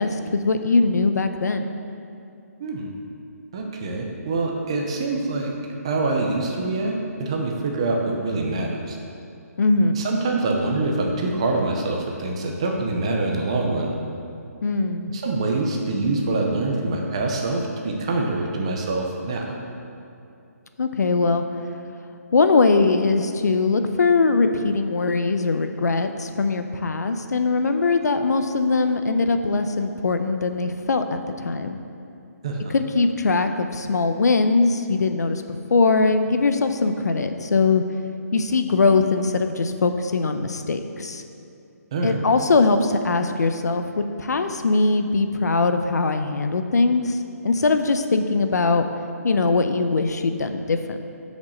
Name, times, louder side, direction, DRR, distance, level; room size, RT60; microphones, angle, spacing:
voice 1, 0.0-1.7 9.6-9.9 14.6-15.1 20.8-21.4 22.3-31.8 32.7-37.8 38.3-41.2 42.0-47.2 47.4-48.8 49.2-51.0, left 3 dB, 85° left, 8 dB, 0.7 m, -21 dB
voice 2, 2.6-2.9 3.5-5.5 5.8-6.9 7.2-9.0 9.9-13.9 15.1-19.5 32.4-32.7 41.9-42.2, right 2 dB, 20° right, 1 dB, 0.6 m, -25 dB
6.9 x 5.2 x 6.3 m, 2.6 s
hypercardioid pair, 180°, 9 cm